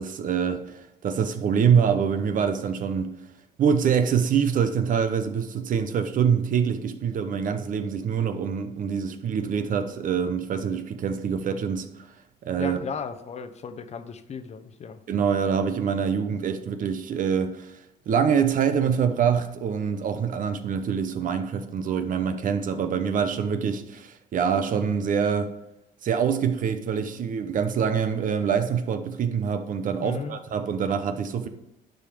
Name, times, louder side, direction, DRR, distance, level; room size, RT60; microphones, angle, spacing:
voice 1, 0.0-3.1 3.6-12.1 12.4-12.8 15.1-25.5 26.0-31.5, right 7 dB, 50° right, 0.8 m, -25 dB
voice 2, 12.6-15.0 30.0-30.4, left 6 dB, 40° left, 0.8 m, -35 dB
10.5 x 5.0 x 5.0 m
cardioid pair, 110°, 17 cm